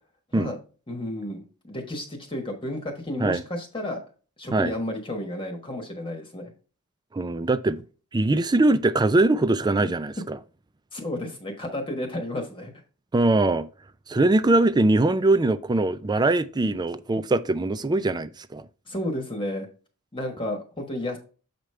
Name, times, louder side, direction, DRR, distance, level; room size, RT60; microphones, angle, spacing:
voice 1, 0.9-4.0 4.4-6.5 9.8-9.9 10.9-12.7 16.7-16.8 18.9-19.7 20.1-21.2, left 1 dB, 25° left, 1.3 m, -32 dB
voice 2, 7.1-7.8 8.1-10.4 13.1-13.7 14.1-18.7, right 2 dB, 20° right, 0.4 m, -22 dB
7.5 x 5.1 x 3.2 m
head